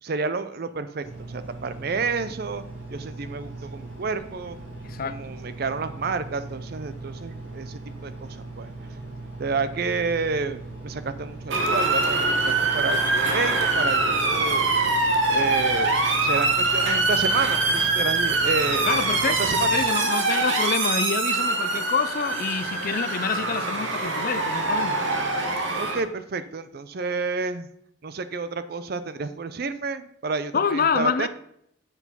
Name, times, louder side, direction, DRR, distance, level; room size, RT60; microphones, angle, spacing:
voice 1, 0.0-2.6 2.9-4.6 5.0-8.7 9.4-14.7 15.3-19.0 19.3-19.7 25.7-27.7 28.0-31.3, right 4 dB, 50° right, 0.5 m, -30 dB
Engine, 1.0-19.9, right 2 dB, 90° right, 3.1 m, -39 dB
voice 2, 4.8-5.2 18.9-25.0 30.5-31.3, left 6 dB, 45° left, 0.4 m, -27 dB
Motor vehicle (road) / Siren, 11.5-26.0, right 3 dB, 65° right, 1.0 m, -23 dB
7.9 x 4.8 x 5.4 m
head